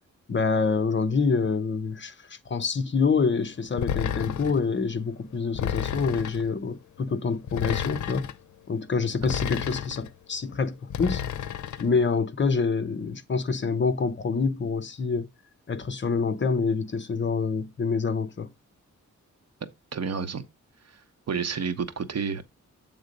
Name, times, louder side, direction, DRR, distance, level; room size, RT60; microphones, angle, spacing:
voice 1, 0.3-8.3 8.7-11.2 11.8-15.3 15.7-18.5, left 4 dB, 40° left, 0.8 m, -26 dB
sound 1, 3.8-4.7 5.6-6.5 7.5-8.4 9.2-10.1 10.9-11.9, left 9 dB, 75° left, 0.6 m, -31 dB
voice 2, 19.9-20.4 20.9-21.0 21.3-22.4, right 6 dB, 60° right, 0.9 m, -30 dB
8.0 x 3.7 x 5.2 m
wide cardioid pair, 145°, 30 cm